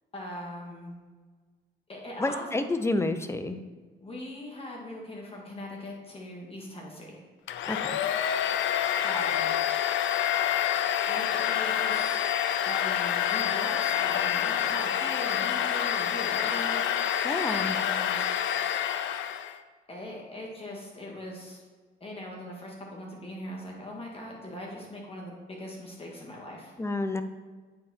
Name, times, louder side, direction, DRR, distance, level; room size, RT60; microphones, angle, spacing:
voice 1, 0.1-0.9 1.9-2.6 4.0-7.2 8.8-9.5 11.1-12.3 12.7-17.0 17.5-18.3 19.9-21.6 22.0-26.7, left 1 dB, 30° left, -3 dB, 1.9 m, -40 dB
voice 2, 2.2-3.6 7.7-7.9 17.2-17.8 26.8-27.2, left 2 dB, 15° left, 9 dB, 0.6 m, -29 dB
Domestic sounds home sounds, 7.5-19.6, left 10 dB, 70° left, 0.5 m, -27 dB
8.8 x 4.1 x 4.2 m, 1.4 s
cardioid pair, 90°, 20 cm